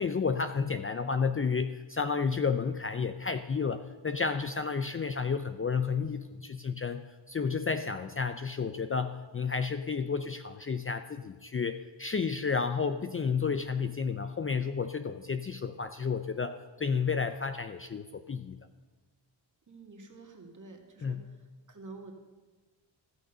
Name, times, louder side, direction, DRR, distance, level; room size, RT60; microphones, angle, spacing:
voice 1, 0.0-18.6 21.0-21.3, left 5 dB, 30° left, 9 dB, 0.5 m, -31 dB
voice 2, 19.7-21.4 21.7-22.1, right 3 dB, 40° right, 2 dB, 2.2 m, -49 dB
15.0 x 6.3 x 6.8 m, 1.3 s
cardioid pair, 80°, 46 cm